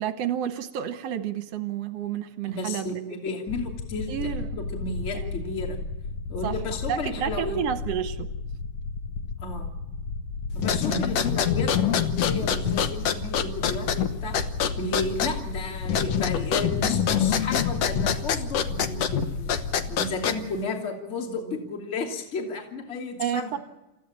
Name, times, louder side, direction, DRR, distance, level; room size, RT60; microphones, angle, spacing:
voice 1, 0.0-3.2 4.1-4.6 5.1-5.3 6.4-6.6 6.9-8.3 10.9-11.3 23.2-23.6, right 9 dB, 65° right, 10 dB, 1.8 m, -30 dB
voice 2, 2.5-4.1 4.6-5.8 6.3-7.6 9.4-9.7 10.5-14.3 14.8-19.5 19.9-23.6, left 3 dB, 20° left, 1 dB, 2.7 m, -33 dB
sound 1, 3.5-20.0, left 4 dB, 80° left, 1.3 m, -34 dB
sound 2, 10.5-20.6, left 8 dB, 60° left, 1.8 m, -26 dB
29.0 x 15.0 x 8.8 m, 1.0 s
omnidirectional pair, 3.8 m